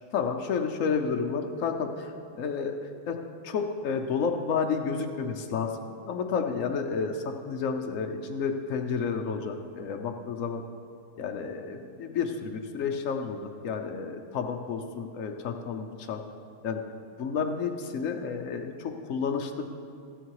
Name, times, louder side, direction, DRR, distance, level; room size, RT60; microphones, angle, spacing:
voice 1, 0.1-2.7 3.1-3.2 3.4-5.7 6.1-10.6 11.2-16.2 16.6-16.8 17.2-19.7, left 5 dB, 75° left, 4 dB, 0.7 m, -31 dB
14.0 x 10.5 x 4.7 m, 2.4 s
omnidirectional pair, 2.3 m